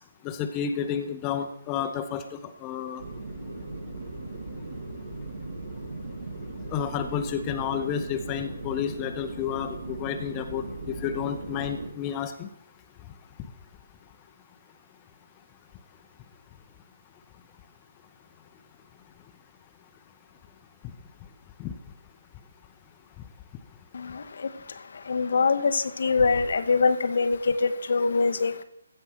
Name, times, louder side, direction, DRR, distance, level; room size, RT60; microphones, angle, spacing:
voice 1, 0.2-3.0 6.7-12.5 21.6-21.7, left 8 dB, 20° left, 7 dB, 0.7 m, -31 dB
sound 1, 3.0-11.9, right 2 dB, 65° right, 2.9 m, -38 dB
voice 2, 25.1-27.4 27.9-28.5, left 4 dB, 55° left, 11 dB, 0.7 m, -23 dB
15.0 x 5.5 x 6.0 m, 0.77 s
figure-of-eight pair, 140°, 0 cm